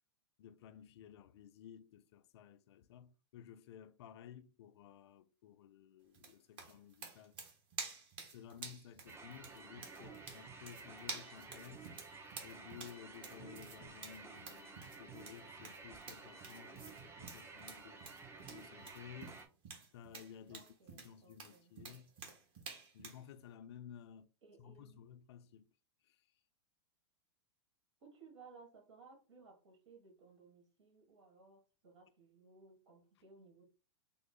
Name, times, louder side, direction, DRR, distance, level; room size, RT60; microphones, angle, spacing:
voice 1, 0.4-7.4 8.2-11.9 12.4-18.0 18.5-19.4 19.9-22.1 22.9-24.3 24.6-25.7 26.1-26.2, left 9 dB, 65° left, 0.4 m, -55 dB
sound 1, 6.1-23.2, right 4 dB, 35° right, 1.2 m, -50 dB
sound 2, 9.1-19.5, right 4 dB, 15° right, 0.6 m, -53 dB
voice 2, 20.5-21.7 24.4-25.0 28.0-33.6, right 4 dB, 75° right, 1.5 m, -61 dB
3.7 x 2.0 x 3.6 m
hypercardioid pair, 110°, 15 cm